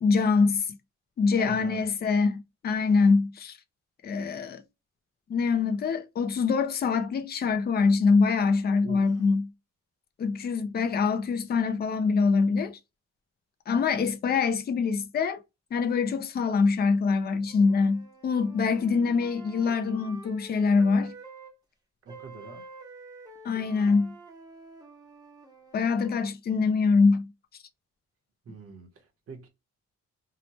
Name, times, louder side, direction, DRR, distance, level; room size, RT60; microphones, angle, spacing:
voice 1, 0.0-0.6 1.2-3.6 4.0-4.6 5.3-9.5 10.2-12.8 13.7-15.4 15.7-21.1 23.4-24.1 25.7-27.3, left 4 dB, 35° left, 0.4 m, -24 dB
voice 2, 1.4-1.9 8.8-9.3 22.0-22.7 28.4-29.5, right 4 dB, 50° right, 0.8 m, -44 dB
sound 1, 17.4-21.5 22.1-26.3, right 3 dB, 15° right, 0.7 m, -48 dB
2.8 x 2.0 x 2.9 m
wide cardioid pair, 165°, 29 cm